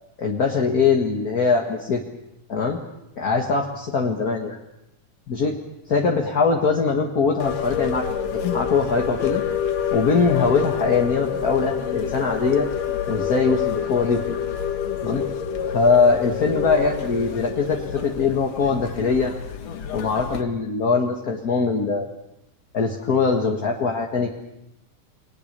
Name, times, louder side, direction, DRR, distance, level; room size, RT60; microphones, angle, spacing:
voice 1, 0.2-2.0 2.5-2.8 3.2-4.6 5.3-5.6 5.9-8.1 8.4-9.4 9.9-12.7 13.1-14.4 15.0-15.2 15.7-19.3 19.9-22.1 22.7-24.3, left 4 dB, 40° left, 1 dB, 1.6 m, -22 dB
sound 1, 7.4-20.4, left 8 dB, 60° left, 2.6 m, -28 dB
29.5 x 20.5 x 6.8 m, 0.87 s
omnidirectional pair, 3.5 m